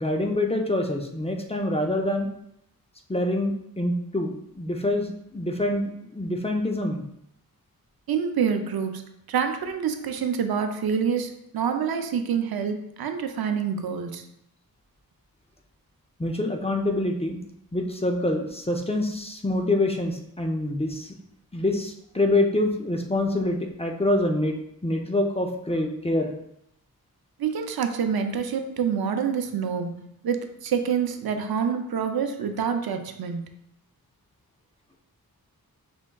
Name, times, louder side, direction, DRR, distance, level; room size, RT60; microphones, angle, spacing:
voice 1, 0.0-2.3 3.1-7.0 16.2-17.4 17.7-21.1 21.5-26.3, left 1 dB, 15° left, 2 dB, 0.5 m, -26 dB
voice 2, 8.1-9.0 9.3-14.2 27.4-33.5, right 7 dB, 85° right, 6 dB, 0.5 m, -27 dB
5.2 x 3.5 x 2.2 m, 0.76 s
wide cardioid pair, 85°, 36 cm